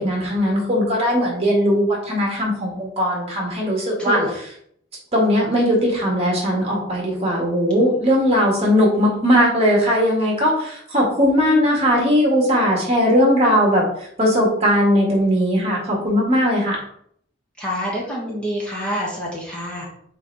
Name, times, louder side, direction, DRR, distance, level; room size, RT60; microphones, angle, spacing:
voice 1, 0.0-4.2 5.1-13.8 14.2-16.8, equal, 35° right, -2 dB, 1.9 m, -19 dB
voice 2, 4.0-4.3 17.6-19.9, equal, 5° left, -5 dB, 1.5 m, -26 dB
5.8 x 4.4 x 4.0 m, 0.66 s
head